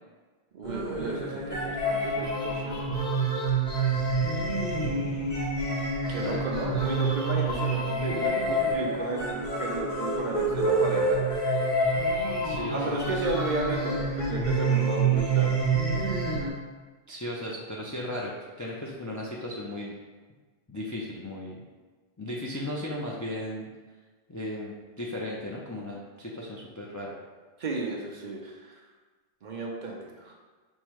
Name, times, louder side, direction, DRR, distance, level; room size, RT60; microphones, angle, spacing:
voice 1, 0.5-3.0 6.1-11.2 12.7-15.5 27.6-28.8 29.4-30.3, right 2 dB, 50° right, -1 dB, 0.7 m, -33 dB
sound 1, 0.6-16.5, right 2 dB, 50° left, 1.1 m, -27 dB
voice 2, 12.4-13.3 17.1-18.3 18.6-20.0 20.7-21.6 22.2-23.7 24.3-27.1, left 1 dB, 30° left, -4 dB, 0.3 m, -36 dB
5.4 x 2.1 x 4.6 m, 1.3 s
omnidirectional pair, 1.1 m